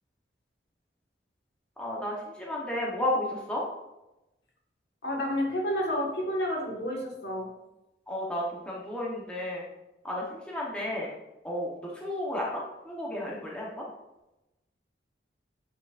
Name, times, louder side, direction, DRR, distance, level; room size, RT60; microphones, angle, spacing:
voice 1, 1.8-3.6 8.1-9.6 10.0-11.1 11.4-13.9, left 1 dB, 5° left, -4 dB, 0.9 m, -32 dB
voice 2, 5.0-7.5, equal, 65° left, -1 dB, 1.6 m, -30 dB
8.2 x 5.6 x 2.5 m, 0.96 s
head